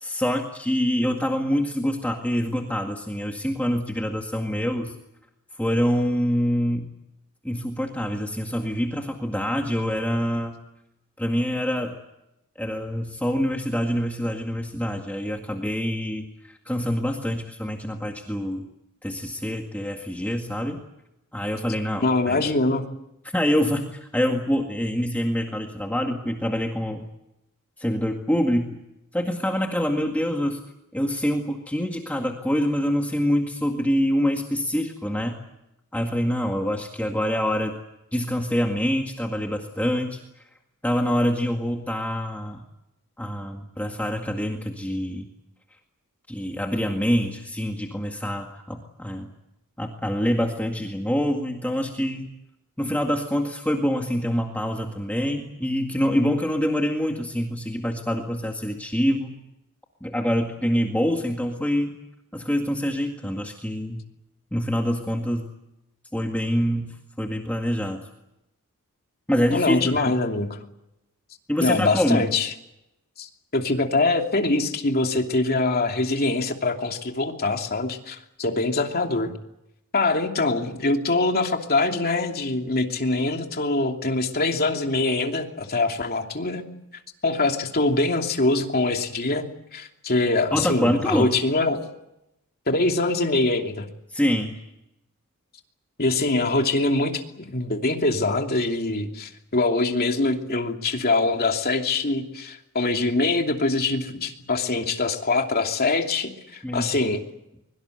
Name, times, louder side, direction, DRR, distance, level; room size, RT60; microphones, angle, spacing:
voice 1, 0.0-4.9 5.6-6.9 7.4-10.6 11.2-12.0 12.6-18.7 19.0-20.8 21.3-22.4 23.3-27.1 27.8-28.8 29.1-30.6 30.9-35.4 35.9-37.8 38.1-40.2 40.8-42.7 43.2-45.3 46.3-49.3 49.8-52.3 52.8-59.4 60.0-62.0 62.3-64.0 64.5-65.5 66.1-68.0 69.3-70.1 71.5-72.3 90.5-91.3 94.1-94.6 106.6-106.9, equal, 5° left, 2 dB, 1.9 m, -25 dB
voice 2, 22.0-22.8 69.5-70.6 71.6-72.5 73.2-73.3 73.5-79.3 79.9-86.6 87.2-89.5 89.7-91.8 92.7-93.9 96.0-107.2, left 2 dB, 45° left, 3 dB, 2.8 m, -23 dB
24.0 x 23.0 x 8.0 m, 0.87 s
head